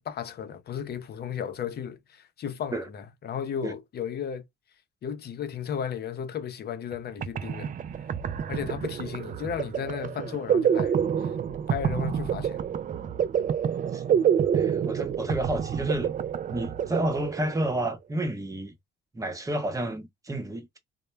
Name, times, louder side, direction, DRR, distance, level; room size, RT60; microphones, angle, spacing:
voice 1, 0.0-4.4 5.0-7.7 8.5-11.3 11.7-12.6, left 8 dB, 55° left, 0.6 m, -34 dB
sound 1, 6.9-7.0 7.2-17.8, right 8 dB, 45° right, 0.4 m, -28 dB
voice 2, 14.5-16.1 16.5-18.7 19.1-20.8, right 1 dB, 15° right, 0.8 m, -30 dB
2.1 x 2.1 x 3.1 m
cardioid pair, 90°, 20 cm